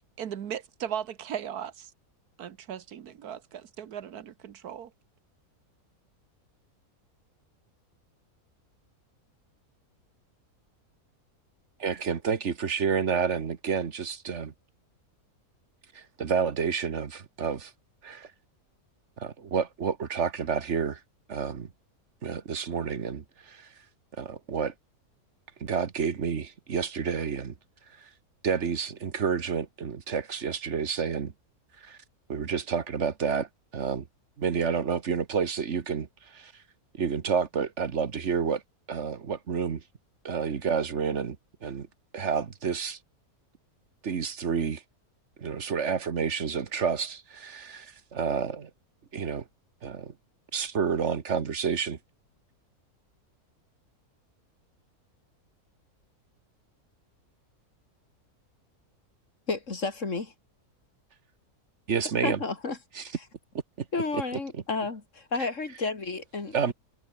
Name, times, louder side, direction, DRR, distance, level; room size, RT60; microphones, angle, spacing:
voice 1, 0.2-1.9 2.4-4.9, right 9 dB, 80° right, 1.6 m, -37 dB
voice 2, 11.8-14.5 15.9-17.7 18.0-18.3 19.2-21.0 21.3-21.7 22.2-23.7 24.2-24.7 25.6-27.5 28.0-28.1 28.4-31.3 31.8-32.0 32.3-34.1 34.4-36.5 36.9-38.6 38.9-39.8 40.2-41.4 41.6-41.9 42.1-43.0 44.0-44.8 45.4-48.7 49.1-49.4 49.8-50.1 50.5-52.0 61.9-62.4 62.9-63.1 65.4-65.5 66.5-66.7, right 6 dB, 50° right, 1.6 m, -29 dB
voice 3, 59.5-60.3 62.2-62.8 63.9-66.7, left 3 dB, 55° left, 3.4 m, -31 dB
omnidirectional pair, 1.6 m